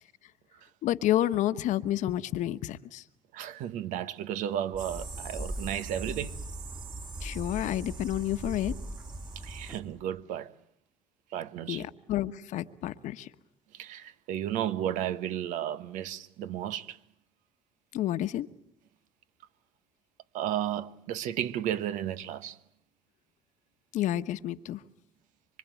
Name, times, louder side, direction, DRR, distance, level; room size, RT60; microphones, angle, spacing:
voice 1, 0.8-3.0 7.2-8.7 11.7-13.3 17.9-18.5 23.9-24.8, left 13 dB, 70° left, 1.2 m, -30 dB
voice 2, 3.3-6.4 9.4-10.5 11.3-11.8 13.7-17.0 20.3-22.6, right 11 dB, 80° right, 1.2 m, -33 dB
sound 1, 4.7-10.2, right 1 dB, 20° right, 2.2 m, -42 dB
sound 2, 4.8-9.8, right 3 dB, 40° right, 3.5 m, -42 dB
25.0 x 25.0 x 9.2 m
cardioid pair, 90°, 13 cm